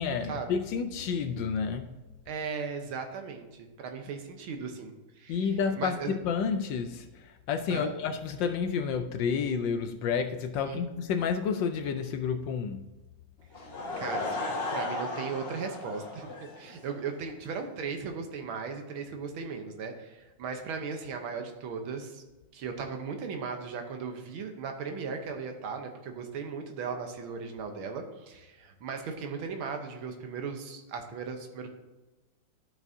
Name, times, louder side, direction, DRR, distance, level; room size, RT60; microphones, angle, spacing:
voice 1, 0.0-1.9 5.3-7.1 7.5-12.9, left 6 dB, 75° left, 7 dB, 1.2 m, -30 dB
voice 2, 2.3-6.2 7.7-8.0 10.7-10.9 14.0-22.2 22.5-31.7, right 5 dB, 75° right, 5 dB, 1.7 m, -37 dB
Laughter / Crowd, 13.5-17.0, left 2 dB, 30° left, 1.6 m, -35 dB
12.5 x 6.0 x 2.7 m, 1.1 s
omnidirectional pair, 2.3 m